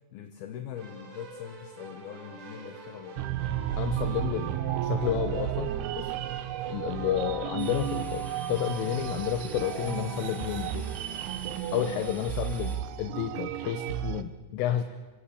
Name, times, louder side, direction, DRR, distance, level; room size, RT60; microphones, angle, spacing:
voice 1, 0.1-3.3 11.8-12.0, left 9 dB, 70° left, 6 dB, 2.6 m, -42 dB
Keyboard (musical), 0.7-11.4, right 3 dB, 45° right, 4.2 m, -44 dB
sound 1, 3.2-14.2, right 12 dB, 80° right, 2.4 m, -33 dB
voice 2, 3.8-6.1 6.7-10.9 11.7-14.8, left 11 dB, 85° left, 7 dB, 3.6 m, -31 dB
sound 2, 7.6-12.8, right 2 dB, ahead, 0.5 m, -50 dB
26.5 x 19.0 x 8.5 m, 1.3 s
omnidirectional pair, 5.7 m